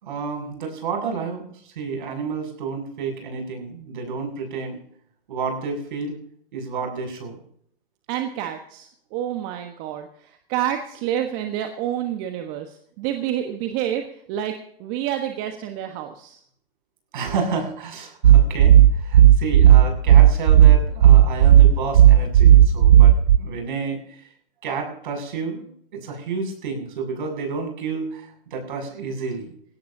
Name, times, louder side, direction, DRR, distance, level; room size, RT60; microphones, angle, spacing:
voice 1, 0.0-4.8 5.3-6.2 6.5-7.4 17.1-24.3 24.6-29.5, right 4 dB, 55° right, 3 dB, 7.0 m, -30 dB
voice 2, 8.1-16.4, right 11 dB, 30° right, 5 dB, 1.3 m, -28 dB
sound 1, 18.2-23.4, right 11 dB, 70° right, 0.7 m, -11 dB
19.5 x 17.0 x 2.8 m, 0.65 s
hypercardioid pair, 135°, 30 cm